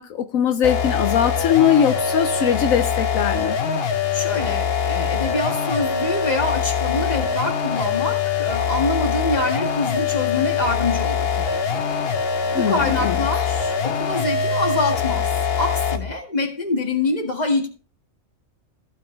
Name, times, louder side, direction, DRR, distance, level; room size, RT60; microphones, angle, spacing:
voice 1, 0.0-3.6 12.5-13.2, left 9 dB, 80° left, 1.1 m, -20 dB
sound 1, 0.6-16.1, left 6 dB, 50° left, 1.0 m, -23 dB
voice 2, 4.1-11.8 12.4-15.3 15.6-17.7, left 2 dB, 30° left, 1.8 m, -25 dB
15.0 x 6.3 x 3.2 m
omnidirectional pair, 1.4 m